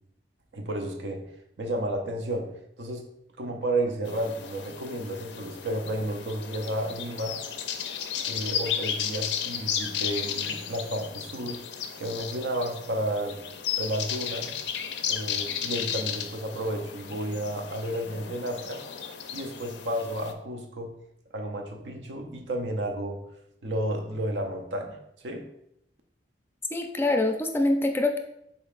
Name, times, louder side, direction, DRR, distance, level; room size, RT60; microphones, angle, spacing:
voice 1, 0.5-1.2 1.6-2.5 2.8-3.1 3.4-7.4 8.3-11.6 12.0-13.4 13.8-14.5 15.1-18.8 19.3-20.9 21.3-23.2 23.6-25.0 25.2-25.5, right 1 dB, 85° right, 4 dB, 0.7 m, -32 dB
sound 1, 4.0-20.3, left 8 dB, 80° left, 0.4 m, -34 dB
voice 2, 26.7-28.2, left 2 dB, 15° left, 5 dB, 0.3 m, -25 dB
5.1 x 4.1 x 2.4 m, 0.78 s
head